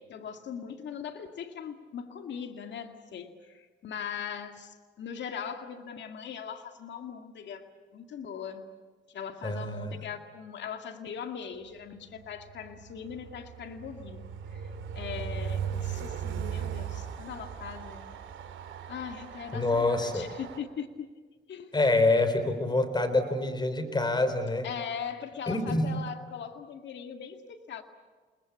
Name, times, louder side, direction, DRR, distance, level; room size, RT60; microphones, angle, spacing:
voice 1, 0.1-8.7 9.1-14.3 14.5-18.1 18.9-21.1 21.5-21.8 24.6-27.8, left 7 dB, 65° left, 6 dB, 2.1 m, -40 dB
voice 2, 9.4-10.0 19.5-20.3 21.7-24.7 25.5-25.9, left 2 dB, 20° left, 10 dB, 3.9 m, -26 dB
Train, 12.2-20.6, right 8 dB, 75° right, 2.8 m, -38 dB
29.0 x 20.5 x 8.4 m, 1.4 s
cardioid pair, 90°, 20 cm